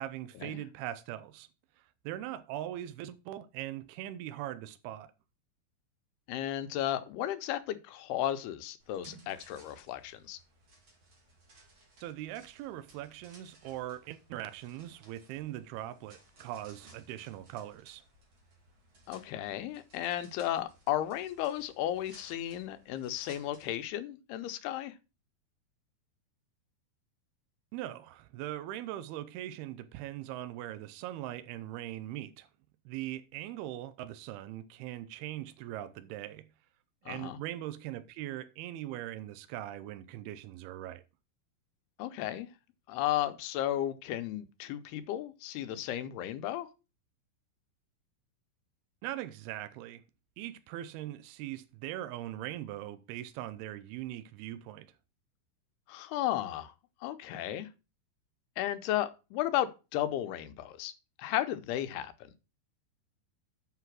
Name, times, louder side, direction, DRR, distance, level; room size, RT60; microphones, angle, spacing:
voice 1, 0.0-1.5 1.8-5.1 12.0-18.0 27.7-32.5 32.9-36.5 37.0-41.0 49.0-50.0 50.4-54.9, right 13 dB, 85° right, 2.6 m, -41 dB
voice 2, 6.3-10.4 19.1-24.9 37.1-37.4 42.0-42.5 42.9-46.7 55.9-56.7 57.0-57.7 58.6-60.9 61.2-62.3, left 12 dB, 85° left, 2.8 m, -34 dB
sound 1, 8.8-23.8, right 2 dB, 35° right, 2.6 m, -60 dB
7.6 x 5.8 x 6.0 m
omnidirectional pair, 4.5 m